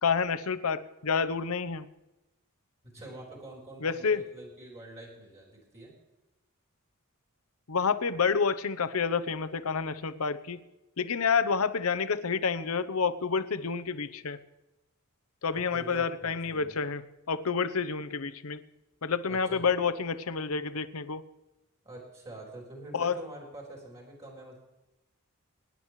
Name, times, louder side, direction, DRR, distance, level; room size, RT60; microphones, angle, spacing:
voice 1, 0.0-1.9 3.8-4.2 7.7-10.7 11.0-14.4 15.4-17.0 17.3-18.6 19.0-21.2 22.9-23.2, left 5 dB, 70° left, 13 dB, 0.8 m, -29 dB
voice 2, 2.9-5.9 15.5-16.8 19.3-19.6 21.8-24.6, right 2 dB, 30° right, -2 dB, 3.8 m, -46 dB
23.0 x 10.5 x 3.2 m, 1.0 s
head